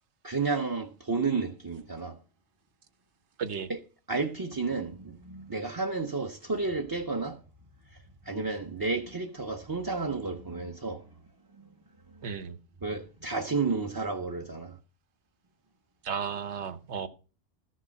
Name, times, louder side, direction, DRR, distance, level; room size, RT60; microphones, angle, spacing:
voice 1, 0.2-2.2 3.7-3.8 4.1-7.4 7.9-11.0 11.6-11.7 12.1-12.3 12.8-14.8, right 4 dB, 25° right, 0.6 m, -32 dB
voice 2, 3.4-3.7 12.2-12.6 16.0-17.1, right 7 dB, 75° right, 1.1 m, -34 dB
13.5 x 6.3 x 5.1 m
omnidirectional pair, 1.2 m